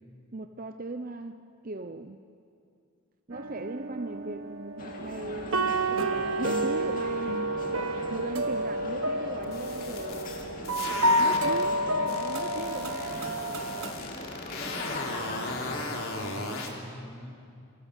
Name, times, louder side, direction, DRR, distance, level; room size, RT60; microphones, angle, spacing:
voice 1, 0.3-2.2 3.3-7.4 8.1-10.3 11.1-13.2, right 2 dB, 40° right, 8 dB, 0.7 m, -38 dB
sound 1, 3.3-13.9, right 1 dB, 70° right, 1.7 m, -30 dB
sound 2, 4.8-15.8, left 1 dB, 40° left, 2.7 m, -40 dB
sound 3, 9.4-11.7 12.1-16.7, left 3 dB, 70° left, 3.7 m, -37 dB
voice 2, 15.5-17.4, equal, 5° left, 0 dB, 3.1 m, -45 dB
27.0 x 24.5 x 8.2 m, 2.4 s
head